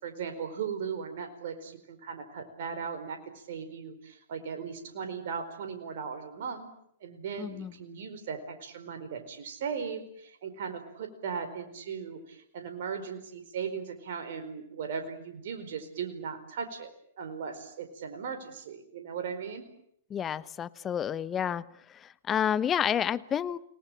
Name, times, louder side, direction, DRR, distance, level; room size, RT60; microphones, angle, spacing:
voice 1, 0.0-6.7 7.0-16.9 17.2-19.7, right 6 dB, 60° right, 7 dB, 4.6 m, -38 dB
voice 2, 7.4-7.7 20.1-21.6 22.0-23.6, left 9 dB, 25° left, 17 dB, 1.1 m, -29 dB
29.5 x 20.0 x 8.8 m, 0.70 s
hypercardioid pair, 110°, 0 cm